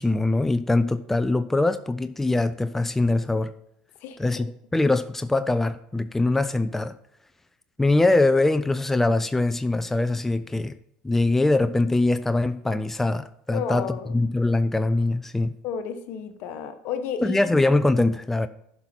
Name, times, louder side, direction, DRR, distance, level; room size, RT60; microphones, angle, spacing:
voice 1, 0.0-3.5 4.2-6.9 7.8-10.7 11.0-13.8 14.1-15.5 17.2-18.5, left 2 dB, 10° left, 11 dB, 0.5 m, -22 dB
voice 2, 4.0-4.5 13.5-14.1 15.6-17.4, left 7 dB, 60° left, 9 dB, 1.2 m, -32 dB
11.0 x 5.7 x 4.4 m, 0.75 s
hypercardioid pair, 80°, 4 cm